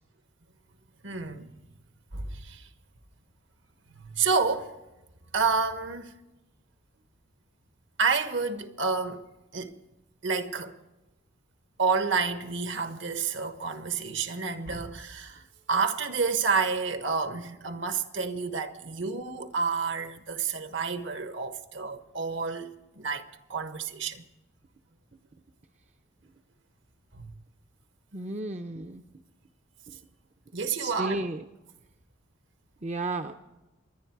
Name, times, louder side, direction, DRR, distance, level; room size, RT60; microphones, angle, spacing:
voice 1, 1.0-1.5 2.1-2.7 4.0-4.7 5.3-6.1 8.0-9.8 10.2-10.8 11.8-24.2 27.1-27.3 30.5-31.3, right 5 dB, 65° right, 1.3 m, -29 dB
voice 2, 28.1-29.0 29.9-30.0 30.8-31.5 32.8-33.3, right 2 dB, 35° right, 0.7 m, -33 dB
28.0 x 11.0 x 4.7 m
head